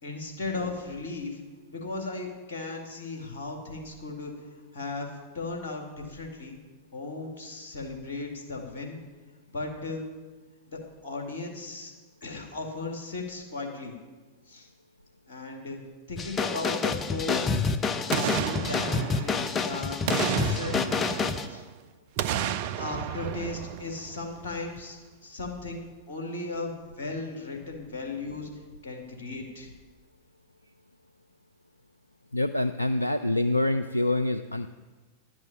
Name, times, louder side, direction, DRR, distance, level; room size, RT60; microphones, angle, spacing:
voice 1, 0.0-1.4 1.7-5.1 5.3-6.6 6.9-9.0 9.5-10.1 10.7-11.9 12.2-13.9 14.5-14.7 15.3-15.8 16.1-17.5 18.1-20.8 21.5-21.7 22.8-28.5 28.8-29.7, left 3 dB, 60° left, 1 dB, 2.4 m, -36 dB
sound 1, 16.2-21.5, left 5 dB, 25° left, 0.7 m, -28 dB
Boom, 18.1-19.6 20.1-21.7 22.2-24.4 24.8-24.9, right 10 dB, 50° right, 0.5 m, -32 dB
voice 2, 32.3-34.7, left 1 dB, 85° left, 10 dB, 0.3 m, -26 dB
11.0 x 6.2 x 8.8 m, 1.3 s
figure-of-eight pair, 90°, 0 cm